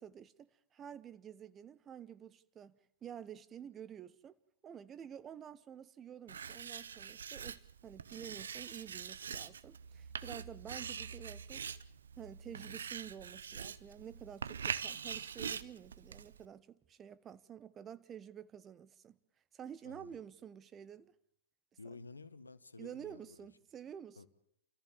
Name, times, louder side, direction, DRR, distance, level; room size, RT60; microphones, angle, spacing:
voice 1, 0.0-4.3 4.6-11.6 12.2-19.2 19.5-21.1 22.8-24.3, right 9 dB, 25° right, 1.0 m, -50 dB
Writing, 6.3-16.5, right 7 dB, 70° right, 0.9 m, -44 dB
voice 2, 19.8-20.2 21.8-23.5 24.2-24.3, left 3 dB, 85° left, 1.3 m, -52 dB
29.5 x 14.5 x 7.2 m
figure-of-eight pair, 105°, 0 cm